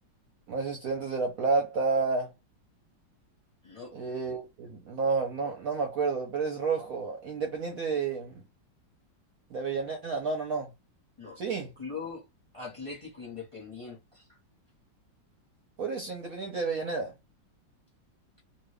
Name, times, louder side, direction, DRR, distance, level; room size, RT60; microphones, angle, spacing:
voice 1, 0.5-2.3 3.9-8.3 9.5-10.7 11.4-11.7 15.8-17.1, right 4 dB, 60° right, 1.0 m, -30 dB
voice 2, 11.8-12.2 12.5-14.2, left 4 dB, 20° left, 1.0 m, -41 dB
2.9 x 2.6 x 3.4 m
omnidirectional pair, 2.0 m